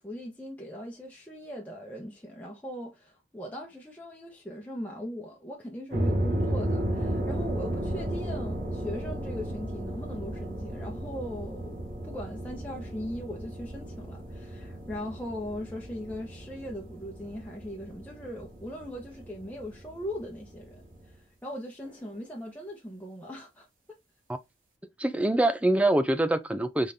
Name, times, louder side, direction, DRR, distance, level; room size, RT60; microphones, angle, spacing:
voice 1, 0.0-20.8 21.1-23.7, equal, 10° left, 0.9 m, -39 dB
sound 1, 5.9-21.1, right 1 dB, 45° right, 2.7 m, -34 dB
voice 2, 25.0-26.9, right 1 dB, 5° right, 0.4 m, -24 dB
5.1 x 3.7 x 2.6 m
head